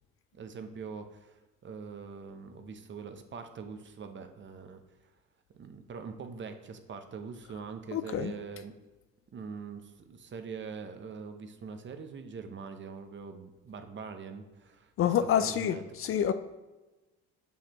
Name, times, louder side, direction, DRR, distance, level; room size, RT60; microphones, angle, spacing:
voice 1, 0.3-1.4 1.6-4.8 5.5-8.7 9.3-15.1 15.4-15.8, right 5 dB, 35° right, 8 dB, 0.7 m, -43 dB
voice 2, 7.9-8.3 15.0-16.3, left 9 dB, 45° left, 11 dB, 0.4 m, -27 dB
7.0 x 5.9 x 3.0 m, 1.1 s
supercardioid pair, 75°, 32 cm